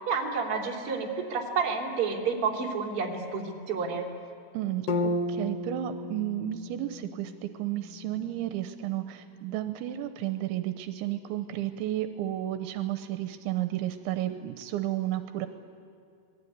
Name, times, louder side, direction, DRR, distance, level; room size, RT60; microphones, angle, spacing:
voice 1, 0.1-4.1, right 5 dB, 35° right, -1 dB, 3.4 m, -30 dB
voice 2, 4.5-15.5, right 13 dB, 85° right, 8 dB, 3.1 m, -32 dB
sound 1, 4.9-8.9, left 2 dB, 90° left, 1.4 m, -34 dB
27.5 x 20.5 x 9.5 m, 2.4 s
omnidirectional pair, 5.3 m